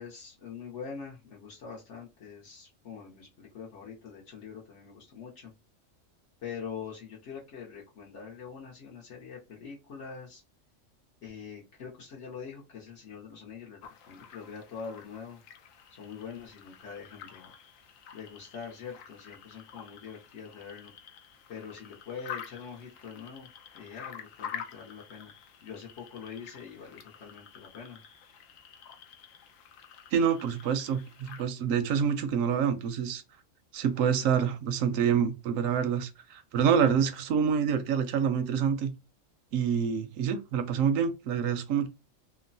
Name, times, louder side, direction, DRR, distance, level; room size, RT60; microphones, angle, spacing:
voice 1, 0.0-5.5 6.4-10.4 11.2-13.8 14.1-15.4 16.0-17.5 18.1-20.9 21.5-23.5 23.7-25.3 25.6-28.0, left 6 dB, 65° left, 1.1 m, -44 dB
sound 1, 13.8-31.5, left 8 dB, 90° left, 1.0 m, -48 dB
voice 2, 30.1-33.2 33.7-38.9 39.5-41.9, right 7 dB, 85° right, 1.0 m, -27 dB
3.0 x 2.0 x 2.6 m
omnidirectional pair, 1.3 m